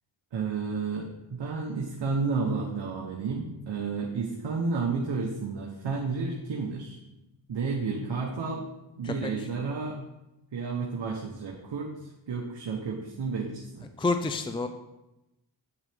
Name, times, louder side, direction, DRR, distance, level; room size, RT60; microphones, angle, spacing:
voice 1, 0.3-7.0 7.5-8.6 9.0-10.0 10.5-13.9, right 4 dB, 60° right, -1 dB, 1.2 m, -31 dB
voice 2, 9.0-9.5 14.0-14.7, left 3 dB, 10° left, 8 dB, 0.5 m, -29 dB
7.9 x 7.1 x 3.6 m, 0.96 s
cardioid pair, 50°, 48 cm